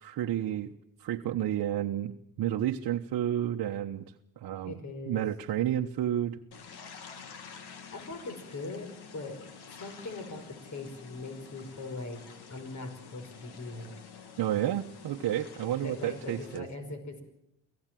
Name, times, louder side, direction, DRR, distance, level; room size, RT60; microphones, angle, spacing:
voice 1, 0.0-0.7 1.0-2.1 2.4-4.0 4.4-4.7 5.1-6.4 14.4-16.7, right 11 dB, 55° right, 2 dB, 1.1 m, -30 dB
voice 2, 4.6-5.2 7.9-9.4 9.7-12.2 12.5-13.9 15.8-17.2, left 3 dB, 40° left, 7 dB, 5.5 m, -41 dB
sound 1, 6.5-16.6, left 6 dB, 65° left, 2.9 m, -49 dB
24.5 x 17.0 x 7.7 m, 0.81 s
cardioid pair, 90°, 43 cm